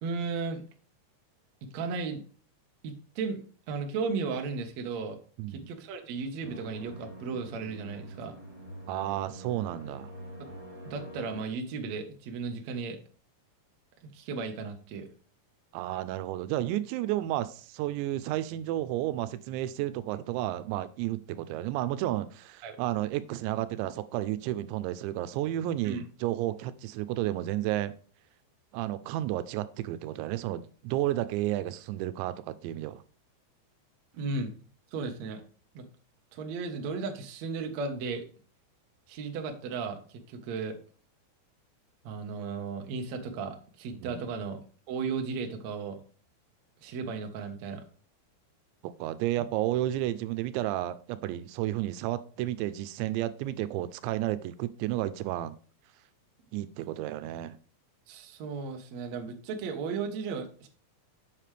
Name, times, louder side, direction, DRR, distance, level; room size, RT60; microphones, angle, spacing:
voice 1, 0.0-0.6 1.7-2.2 2.8-5.2 5.5-8.4 10.4-10.5 10.8-13.0 14.0-15.1 22.6-22.8 25.8-26.0 34.1-34.5 34.9-35.4 35.7-35.9 36.3-38.2 39.1-40.8 42.0-44.6 44.9-46.0 46.8-47.8 58.1-60.7, right 4 dB, 70° right, 1.6 m, -35 dB
voice 2, 5.4-5.7 8.9-10.1 15.7-27.9 28.7-33.0 43.9-44.2 48.8-55.5 56.5-57.6, right 14 dB, 90° right, 3.0 m, -32 dB
sound 1, 6.4-11.4, right 1 dB, 15° left, 1.5 m, -45 dB
7.6 x 7.5 x 3.3 m
omnidirectional pair, 5.1 m